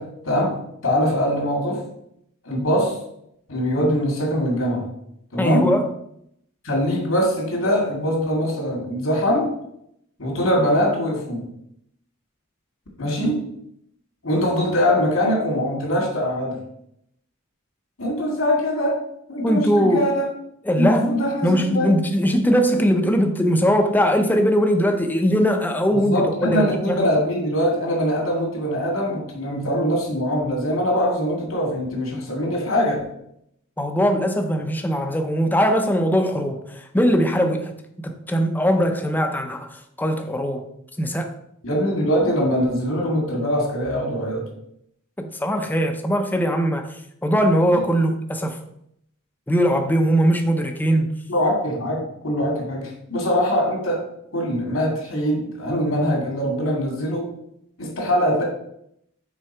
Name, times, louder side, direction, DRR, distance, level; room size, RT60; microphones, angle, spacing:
voice 1, 0.0-1.9 2.4-3.0 3.5-4.9 5.3-5.7 6.6-9.5 10.2-11.5 13.0-13.5 14.2-16.6 18.0-19.0 19.3-20.2 20.8-21.9 25.9-33.1 41.6-44.5 51.3-54.1 54.3-57.3 57.8-58.4, equal, 80° left, 0 dB, 2.3 m, -22 dB
voice 2, 5.4-5.9 19.4-20.1 20.6-21.1 21.4-26.2 26.4-27.1 33.8-37.7 38.0-40.6 41.0-41.3 45.2-48.6 49.5-51.1, equal, 10° left, 5 dB, 0.6 m, -20 dB
6.4 x 4.6 x 4.5 m, 0.74 s
head